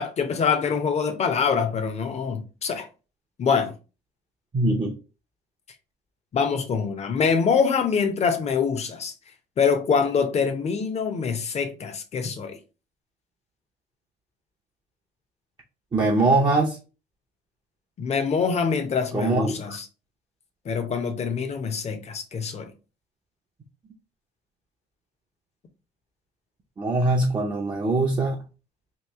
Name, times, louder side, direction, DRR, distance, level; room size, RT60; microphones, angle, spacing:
voice 1, 0.0-2.9 3.4-3.7 6.3-9.1 9.6-12.6 18.0-19.9 20.6-22.7, left 6 dB, 40° left, 0.8 m, -24 dB
voice 2, 4.5-4.9 15.9-16.8 19.1-19.8 26.8-28.4, right 2 dB, 25° right, 0.7 m, -22 dB
3.1 x 2.5 x 3.5 m
cardioid pair, 110°, 17 cm